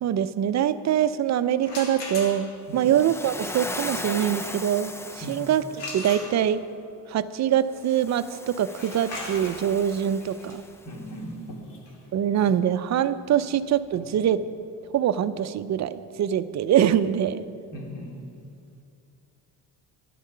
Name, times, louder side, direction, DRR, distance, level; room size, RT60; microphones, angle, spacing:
voice 1, 0.0-6.6 7.1-10.6 12.1-14.4 14.9-17.4, right 10 dB, 40° right, 13 dB, 0.5 m, -24 dB
sound 1, 1.6-2.7 5.8-6.8 8.7-14.3, left 2 dB, 70° left, 2.8 m, -40 dB
Waves surf, 2.8-6.0 7.8-10.9, left 2 dB, 5° left, 0.4 m, -37 dB
voice 2, 10.9-11.8 14.0-14.1 17.7-18.1, equal, 50° left, -1 dB, 2.9 m, -38 dB
12.0 x 10.5 x 5.5 m, 2.5 s
cardioid pair, 100°, 41 cm